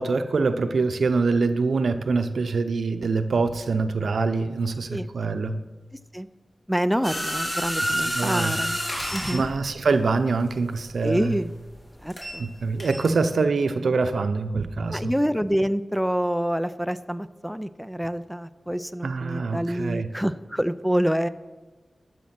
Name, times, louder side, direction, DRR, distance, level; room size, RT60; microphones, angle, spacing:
voice 1, 0.0-5.6 7.8-8.6 9.3-11.4 12.4-15.1 19.0-20.1, right 4 dB, 90° right, 9 dB, 0.6 m, -24 dB
voice 2, 6.7-8.8 9.1-9.5 11.0-11.5 12.0-12.5 14.9-21.3, equal, ahead, 11 dB, 0.4 m, -27 dB
sound 1, 7.0-12.5 12.8-13.1, equal, 25° left, 2.6 m, -29 dB
12.0 x 7.2 x 5.9 m, 1.2 s
wide cardioid pair, 90°, 0 cm